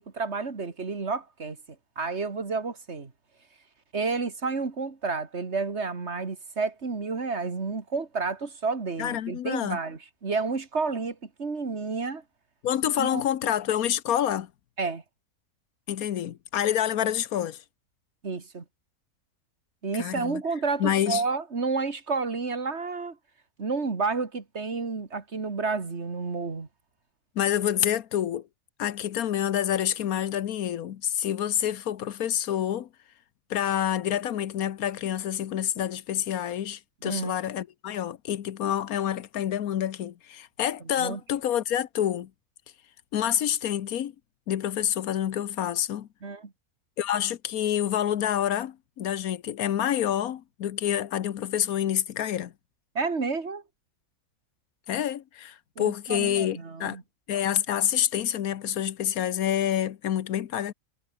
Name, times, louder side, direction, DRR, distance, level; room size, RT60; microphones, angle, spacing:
voice 1, 0.0-1.6 2.0-3.1 3.9-12.2 13.0-13.2 14.8-15.0 18.2-18.6 19.8-23.2 23.6-26.7 37.0-37.3 41.0-41.2 46.2-46.5 52.9-53.6 55.8-57.0, right 4 dB, 50° right, 2.4 m, -30 dB
voice 2, 9.0-9.8 12.6-14.5 15.9-17.6 19.9-20.4 20.8-21.2 27.4-28.5 28.8-32.9 33.5-42.3 43.1-44.1 44.5-46.1 47.0-52.5 54.9-57.0 57.3-60.7, left 10 dB, 90° left, 1.4 m, -27 dB
omnidirectional pair, 1.5 m